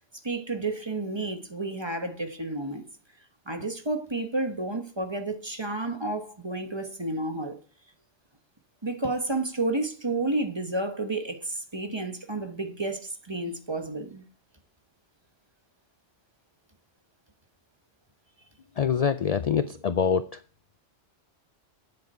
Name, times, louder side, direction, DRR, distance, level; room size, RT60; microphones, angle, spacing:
voice 1, 0.1-2.8 3.5-7.6 8.8-14.2, right 2 dB, 25° right, 1.1 m, -31 dB
voice 2, 18.8-20.3, left 7 dB, 60° left, 0.4 m, -24 dB
9.6 x 7.8 x 4.4 m
omnidirectional pair, 1.2 m